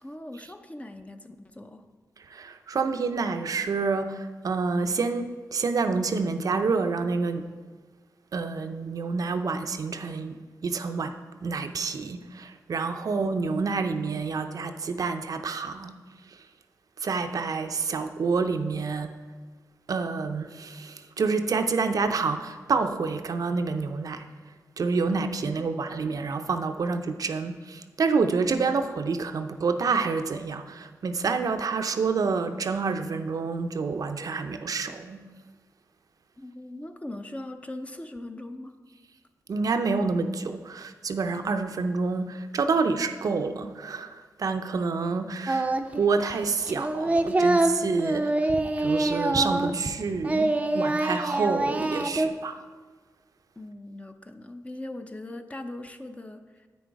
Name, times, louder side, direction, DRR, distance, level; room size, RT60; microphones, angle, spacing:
voice 1, 0.0-1.8 36.4-38.7 53.6-56.7, left 1 dB, 20° left, 7 dB, 0.6 m, -40 dB
voice 2, 2.2-7.5 8.3-10.4 10.6-11.1 11.4-15.9 16.3-16.4 17.0-19.1 19.9-24.3 24.8-35.2 39.5-48.5 48.8-52.6, right 4 dB, 60° right, 7 dB, 0.6 m, -28 dB
Singing, 45.5-46.0 46.3-50.0 50.2-52.3, right 2 dB, 20° right, 0.6 m, -25 dB
8.5 x 6.3 x 4.6 m, 1.4 s
cardioid pair, 70°, 7 cm